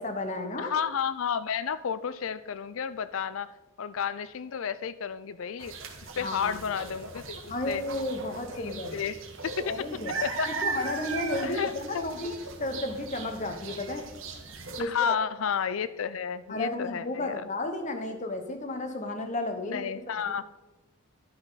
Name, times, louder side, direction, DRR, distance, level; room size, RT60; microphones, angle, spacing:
voice 1, 0.0-0.7 6.2-6.6 7.5-9.0 9.7-10.1 10.5-14.1 14.8-15.1 16.5-19.9 20.2-20.4, left 2 dB, 35° left, 6 dB, 1.0 m, -33 dB
voice 2, 0.6-3.5 3.8-5.8 6.2-7.8 8.6-9.8 10.2-10.5 11.4-12.0 14.8-17.5 19.7-20.5, left 7 dB, 70° left, 15 dB, 0.4 m, -32 dB
sound 1, 5.6-14.8, right 4 dB, 65° right, 1.1 m, -38 dB
11.0 x 6.0 x 4.0 m, 1.0 s
head